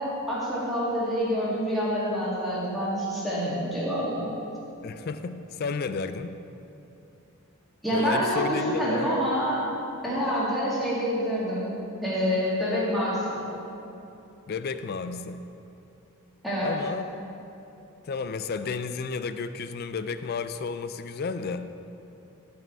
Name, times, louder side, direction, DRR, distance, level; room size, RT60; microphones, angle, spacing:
voice 1, 0.0-4.2 7.8-9.6 10.0-11.7 12.0-13.4 16.4-16.7, equal, ahead, -9 dB, 2.4 m, -27 dB
voice 2, 4.8-6.4 7.9-9.1 14.5-15.4 16.6-17.0 18.0-21.7, left 5 dB, 45° left, 11 dB, 0.3 m, -32 dB
14.5 x 5.0 x 4.6 m, 2.9 s
head